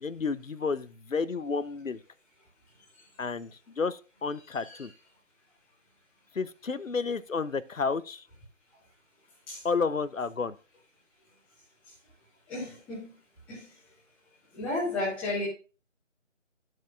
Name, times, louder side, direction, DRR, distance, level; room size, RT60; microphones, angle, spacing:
voice 1, 0.0-2.0 3.2-3.5 3.8-4.9 6.3-8.2 9.6-10.5, left 4 dB, 85° left, 0.8 m, -31 dB
voice 2, 4.5-4.9 9.5-9.6 12.5-13.1 13.5-13.7 14.6-15.5, left 2 dB, 5° left, 1.4 m, -33 dB
11.5 x 7.6 x 2.5 m
figure-of-eight pair, 160°, 39 cm